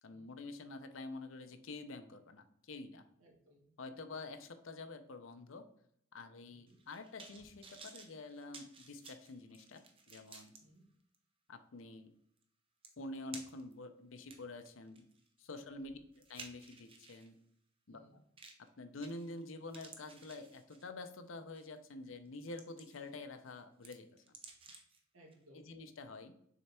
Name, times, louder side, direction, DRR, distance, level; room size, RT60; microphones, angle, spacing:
voice 1, 0.0-3.0 3.8-5.6 6.1-10.5 11.5-12.1 13.0-15.0 15.4-17.4 17.9-18.2 18.8-24.3 25.5-26.3, left 2 dB, 70° left, 8 dB, 0.7 m, -48 dB
voice 2, 3.2-3.7 3.9-4.1 6.5-6.8 10.6-10.9 15.5-16.0 17.9-18.2 25.1-25.7, right 1 dB, 90° right, 0 dB, 1.2 m, -64 dB
sound 1, 6.7-10.6 11.1-11.2 12.4-12.5 12.8-13.7 14.2-17.3 18.4-18.7 19.0-19.4 19.7-21.0 21.6-21.8 22.3-23.1 23.5-25.0 25.3-25.4, right 4 dB, 25° right, 0.7 m, -55 dB
6.4 x 3.4 x 4.3 m, 0.69 s
head